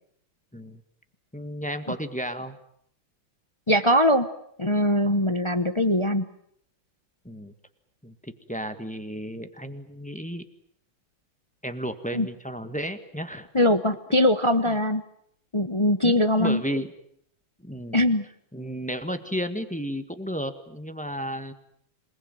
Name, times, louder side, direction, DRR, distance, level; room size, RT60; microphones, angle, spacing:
voice 1, 1.3-2.5 5.0-5.2 7.2-7.5 8.0-10.4 11.6-13.5 14.6-14.7 16.0-16.1 16.4-16.9 17.6-18.0 18.5-21.5, equal, 5° left, 8 dB, 1.4 m, -33 dB
voice 2, 3.7-4.3 4.6-6.2 12.1-12.3 13.5-15.0 15.5-16.6 17.9-18.3, left 1 dB, 35° left, 10 dB, 0.5 m, -21 dB
27.5 x 20.0 x 9.1 m, 0.70 s
omnidirectional pair, 2.3 m